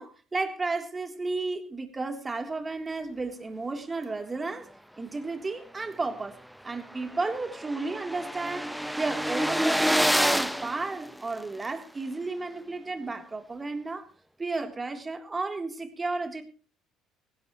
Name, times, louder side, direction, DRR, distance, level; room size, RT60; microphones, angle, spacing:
voice 1, 0.0-4.7 5.0-6.4 6.6-8.7 9.0-14.1 14.4-16.4, right 3 dB, 25° right, 5 dB, 3.5 m, -33 dB
sound 1, 6.1-6.2 6.5-6.6 6.8-11.7, equal, ahead, 0.9 m, -28 dB
20.5 x 16.5 x 3.2 m, 0.36 s
hypercardioid pair, 60°, 0 cm